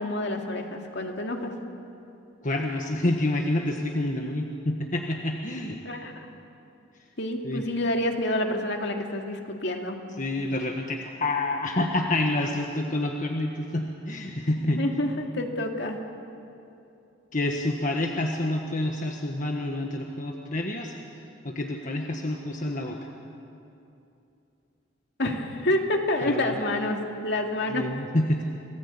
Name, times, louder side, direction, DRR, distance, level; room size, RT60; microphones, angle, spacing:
voice 1, 0.0-1.5 5.9-6.3 7.2-10.0 14.7-16.0 25.2-27.0 27.2-27.9, left 1 dB, 65° left, 3 dB, 2.4 m, -28 dB
voice 2, 2.4-5.8 7.4-7.6 10.2-14.8 17.3-20.9 21.4-23.1 26.2-26.6 27.7-28.4, left 1 dB, 40° left, 2 dB, 1.5 m, -28 dB
27.5 x 19.0 x 8.4 m, 2.7 s
head